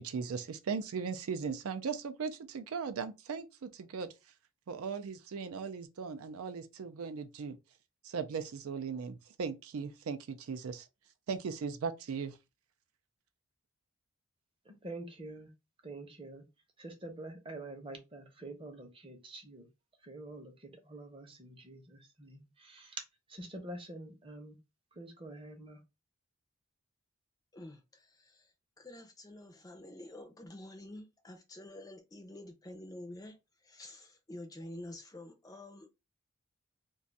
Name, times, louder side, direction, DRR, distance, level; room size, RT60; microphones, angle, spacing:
voice 1, 0.0-4.1 4.7-7.6 8.0-10.9 11.3-12.4, right 5 dB, 75° right, 0.4 m, -38 dB
voice 2, 14.6-15.5 15.8-16.5 16.8-19.7 20.0-23.0 23.3-24.6 24.9-25.8, right 2 dB, 25° right, 0.7 m, -46 dB
voice 3, 27.5-35.9, left 1 dB, 15° left, 0.4 m, -49 dB
2.5 x 2.3 x 3.9 m
head